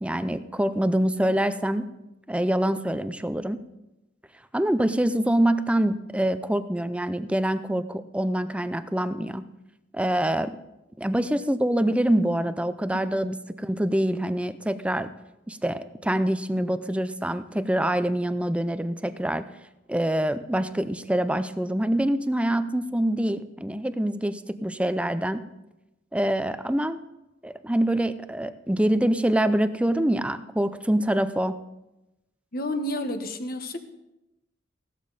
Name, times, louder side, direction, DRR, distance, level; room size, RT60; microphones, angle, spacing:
voice 1, 0.0-1.9 2.3-3.6 4.5-9.4 9.9-10.6 11.0-15.1 15.5-19.4 19.9-25.4 26.1-27.0 27.4-31.6, right 1 dB, 5° right, 12 dB, 0.5 m, -25 dB
voice 2, 32.5-33.8, left 1 dB, 50° left, 6 dB, 1.3 m, -30 dB
16.0 x 12.5 x 4.1 m, 0.95 s
head